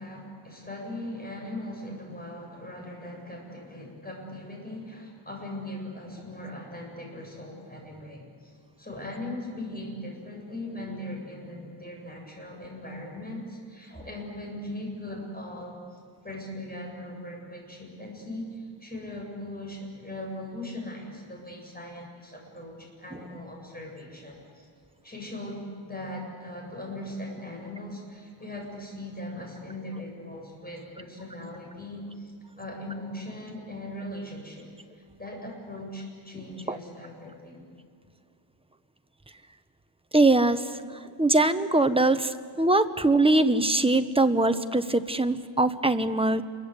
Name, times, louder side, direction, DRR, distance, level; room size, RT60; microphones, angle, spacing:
voice 1, 0.0-24.7 25.0-32.3 32.6-34.7 35.2-37.6, left 1 dB, 20° left, 0 dB, 7.8 m, -39 dB
voice 2, 40.1-40.6 41.2-46.4, right 2 dB, 10° right, 9 dB, 1.0 m, -22 dB
28.5 x 23.0 x 8.3 m, 2.1 s
wide cardioid pair, 105°, 49 cm